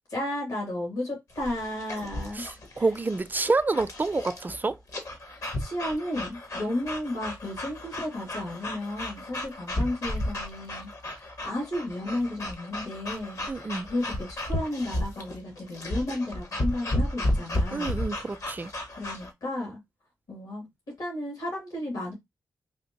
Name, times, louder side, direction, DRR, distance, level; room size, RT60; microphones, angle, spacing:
voice 1, 0.1-2.5 2.7-2.8 5.3-18.0 19.0-19.8 20.3-20.7 21.0-22.1, left 1 dB, 75° left, 2.1 m, -33 dB
sound 1, 1.3-19.3, left 1 dB, 55° left, 1.0 m, -33 dB
voice 2, 2.3-4.8 13.5-13.9 17.7-18.7, right 3 dB, 25° right, 0.4 m, -28 dB
3.4 x 2.5 x 2.9 m
supercardioid pair, 50°, 7 cm